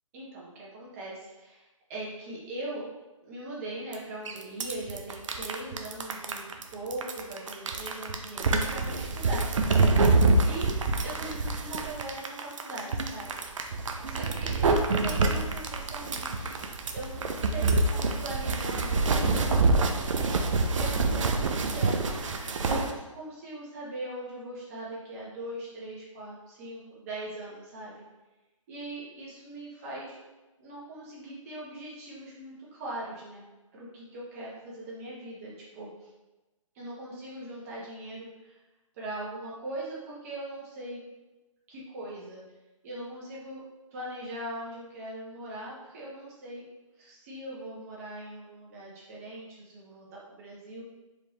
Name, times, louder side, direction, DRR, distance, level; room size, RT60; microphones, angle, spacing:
voice 1, 0.1-2.9 3.2-6.4 6.7-9.5 10.4-10.7 11.0-13.3 13.7-16.6 16.9-20.5 20.7-27.9 28.7-30.2 30.6-33.4 33.7-36.1 36.7-38.5 38.9-41.0 41.7-42.4 42.8-43.6 43.9-46.6 47.0-50.8, right 1 dB, 25° right, -5 dB, 1.2 m, -40 dB
sound 1, 3.9-4.0 4.3-22.9, right 3 dB, 65° right, 0.5 m, -26 dB
4.4 x 2.8 x 3.2 m, 1.1 s
hypercardioid pair, 155°, 17 cm